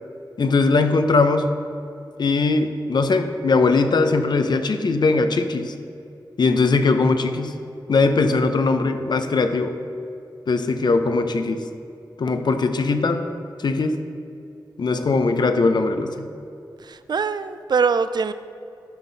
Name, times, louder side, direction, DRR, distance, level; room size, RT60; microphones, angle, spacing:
voice 1, 0.4-1.5 2.2-5.7 6.4-7.6 7.9-9.8 10.5-11.7 12.2-13.3 13.6-14.0 14.8-16.3, left 3 dB, 65° left, 8 dB, 0.6 m, -20 dB
voice 2, 16.8-18.3, right 5 dB, 60° right, 12 dB, 0.4 m, -23 dB
12.0 x 5.7 x 4.0 m, 2.6 s
cardioid pair, 60°, 8 cm